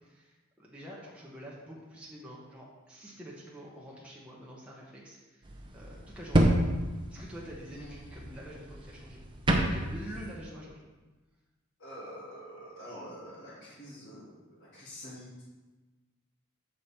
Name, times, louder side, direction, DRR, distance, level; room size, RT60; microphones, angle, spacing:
voice 1, 0.1-5.5 5.7-6.6 7.1-9.2 9.6-10.8, equal, 5° right, -5 dB, 1.1 m, -47 dB
sound 1, 5.4-10.3, right 1 dB, 25° right, 0.8 m, -30 dB
voice 2, 7.7-8.2 11.8-15.4, equal, 70° left, -12 dB, 2.6 m, -46 dB
7.5 x 5.1 x 4.3 m, 1.2 s
head